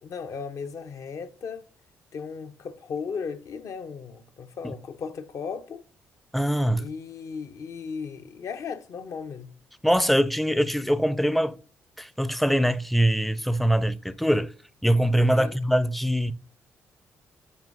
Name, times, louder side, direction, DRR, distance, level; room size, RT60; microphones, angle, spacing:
voice 1, 0.0-1.6 2.1-5.8 6.8-9.5 15.3-15.6, left 5 dB, 50° left, 0.8 m, -36 dB
voice 2, 6.3-6.8 9.8-11.6 12.0-14.5 14.8-16.3, equal, ahead, 0.6 m, -23 dB
13.0 x 4.4 x 2.7 m
figure-of-eight pair, 45°, 7 cm